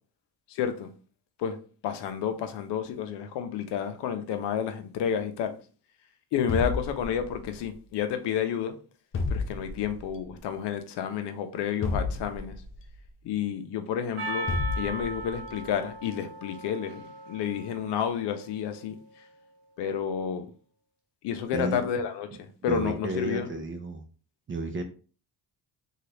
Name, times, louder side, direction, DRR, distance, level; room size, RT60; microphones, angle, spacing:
voice 1, 0.5-0.9 1.4-1.6 1.8-5.5 6.3-8.7 9.3-12.6 13.2-14.5 14.8-19.0 19.8-20.5 21.2-23.5, left 8 dB, 85° left, 0.6 m, -30 dB
sound 1, 6.5-7.6 9.1-10.1 11.8-12.9 14.5-15.4, left 3 dB, 35° left, 0.4 m, -31 dB
Percussion, 14.2-18.8, right 2 dB, 85° right, 0.8 m, -38 dB
voice 2, 21.5-21.8 22.7-24.0 24.5-24.8, right 2 dB, 30° right, 0.5 m, -32 dB
2.8 x 2.4 x 3.2 m
cardioid pair, 110°, 40 cm